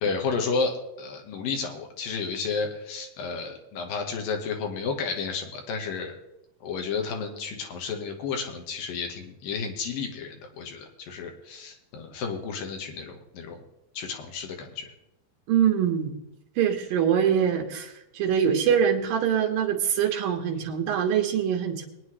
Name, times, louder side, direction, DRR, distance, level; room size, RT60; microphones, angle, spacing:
voice 1, 0.0-6.2 6.6-13.6 13.9-14.8, left 5 dB, 75° left, 4 dB, 3.0 m, -32 dB
voice 2, 15.5-16.1 16.6-21.9, right 8 dB, 75° right, 3 dB, 2.9 m, -24 dB
22.0 x 9.7 x 3.2 m, 0.87 s
omnidirectional pair, 4.2 m